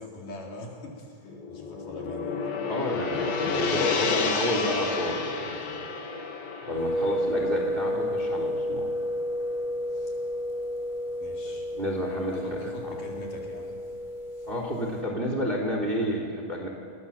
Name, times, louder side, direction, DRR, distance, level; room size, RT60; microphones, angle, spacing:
voice 1, 0.0-2.4 9.9-10.1 11.2-11.7 12.3-13.8 14.3-14.5, left 1 dB, 60° left, -1 dB, 5.2 m, -42 dB
Gong, 1.3-9.6, left 4 dB, 75° left, 4.1 m, -31 dB
voice 2, 2.7-5.8 6.6-8.9 11.5-12.4 12.8-13.0 14.5-16.7, equal, 15° right, 1 dB, 3.3 m, -31 dB
sound 1, 6.7-15.0, equal, 10° left, 4.8 m, -31 dB
29.0 x 23.5 x 7.2 m, 2.1 s
omnidirectional pair, 4.3 m